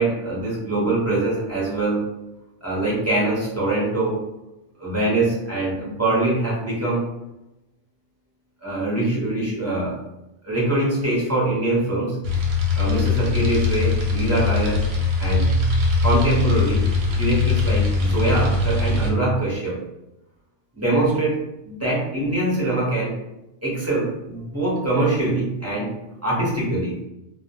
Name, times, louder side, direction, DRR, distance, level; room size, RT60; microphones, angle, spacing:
voice 1, 0.0-2.1 2.6-4.3 4.8-7.1 8.6-10.0 10.4-12.2 12.7-14.8 15.2-15.5 16.0-19.8 20.8-23.2 23.6-25.9 26.2-27.0, right 2 dB, 15° right, -7 dB, 0.6 m, -23 dB
sound 1, 12.2-19.1, left 4 dB, 65° right, 0.8 m, -21 dB
2.2 x 2.1 x 2.7 m, 0.93 s
omnidirectional pair, 1.2 m